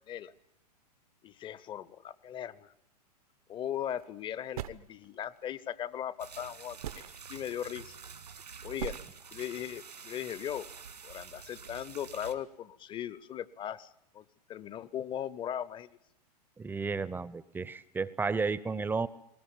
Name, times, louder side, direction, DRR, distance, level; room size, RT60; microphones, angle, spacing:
voice 1, 1.2-2.7 3.5-7.0 7.3-8.0 8.6-9.0 9.3-10.7 11.0-16.0, left 10 dB, 25° left, 18 dB, 0.9 m, -38 dB
sound 1, 3.7-4.1 4.6-5.4 6.3-6.4 6.8-7.3 8.1-8.4 8.8-9.0, right 11 dB, 60° right, 1.0 m, -40 dB
sound 2, 6.2-12.3, right 6 dB, 80° right, 2.4 m, -48 dB
voice 2, 16.6-19.1, right 4 dB, 10° right, 19 dB, 0.8 m, -32 dB
20.5 x 19.0 x 9.0 m, 0.78 s
figure-of-eight pair, 100°, 21 cm